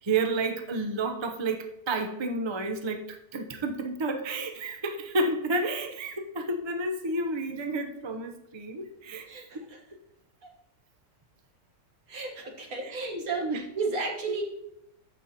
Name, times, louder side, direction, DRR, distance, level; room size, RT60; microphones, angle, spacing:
voice 1, 0.0-9.3 9.5-9.7 12.8-13.6, right 2 dB, 30° right, 5 dB, 0.5 m, -31 dB
voice 2, 9.3-9.8 10.4-10.5 12.1-14.4, right 3 dB, 65° right, 2 dB, 1.9 m, -33 dB
14.5 x 5.4 x 2.9 m, 0.79 s
omnidirectional pair, 1.6 m